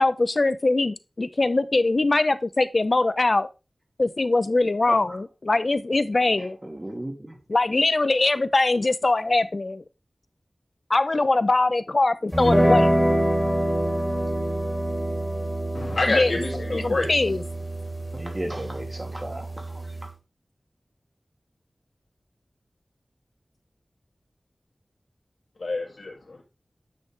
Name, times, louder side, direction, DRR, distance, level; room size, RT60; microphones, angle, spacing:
voice 1, 0.0-3.5 4.0-6.6 7.5-9.8 10.9-13.0 16.1-16.3 16.7-17.4, left 2 dB, 50° left, 0.7 m, -22 dB
voice 2, 6.3-7.4 18.1-19.5, right 1 dB, 25° right, 2.7 m, -34 dB
sound 1, 12.3-20.1, right 1 dB, 10° right, 4.3 m, -25 dB
voice 3, 15.7-17.1 25.6-26.4, left 2 dB, 85° left, 2.6 m, -27 dB
9.4 x 6.3 x 3.4 m
wide cardioid pair, 75°, 0 cm